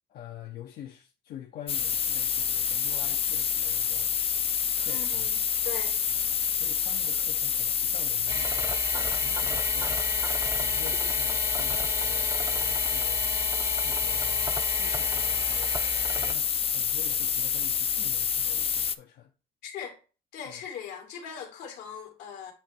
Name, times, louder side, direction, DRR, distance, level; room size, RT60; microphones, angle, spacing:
voice 1, 0.1-4.1 4.8-5.3 6.1-10.0 10.6-13.4 13.8-15.7 16.1-19.3 20.4-20.6, left 11 dB, 70° left, 0.9 m, -47 dB
sound 1, 1.7-19.0, left 7 dB, 35° left, 0.5 m, -27 dB
voice 2, 4.8-5.4 5.6-6.0 19.6-20.0 20.3-22.5, left 8 dB, 85° left, 2.2 m, -39 dB
sound 2, 8.3-16.3, right 3 dB, 20° right, 0.7 m, -35 dB
8.9 x 3.1 x 4.4 m
cardioid pair, 110°, 17 cm